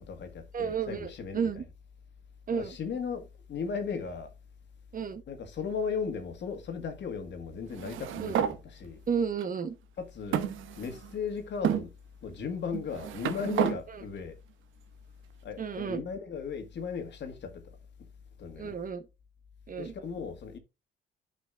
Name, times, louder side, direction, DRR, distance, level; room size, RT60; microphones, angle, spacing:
voice 1, 0.0-1.5 2.5-4.3 5.3-9.0 10.0-10.5 10.8-11.9 12.2-14.4 15.4-17.8 18.4-18.7 19.8-20.6, left 6 dB, 65° left, 1.9 m, -36 dB
voice 2, 0.5-1.7 2.5-2.8 4.9-5.2 8.2-8.4 9.1-9.8 13.9-14.0 15.6-16.0 18.6-19.1 19.7-19.9, right 6 dB, 45° right, 1.1 m, -32 dB
sound 1, 7.7-8.6 9.4-9.5 10.3-11.2 11.6-11.8 12.7-13.8, right 10 dB, 80° right, 0.9 m, -30 dB
10.5 x 5.2 x 2.5 m
cardioid pair, 90°, 20 cm